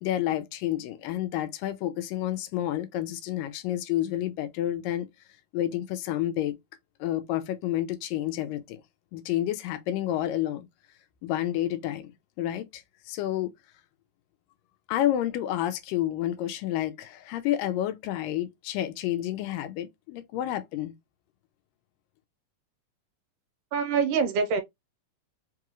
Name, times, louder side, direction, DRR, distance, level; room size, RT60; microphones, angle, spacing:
voice 1, 0.0-5.1 5.5-6.6 7.0-8.8 9.1-10.7 11.2-13.5 14.9-20.9, left 13 dB, 85° left, 2.3 m, -30 dB
voice 2, 23.7-24.6, right 5 dB, 75° right, 2.4 m, -25 dB
5.4 x 2.4 x 3.0 m
omnidirectional pair, 3.9 m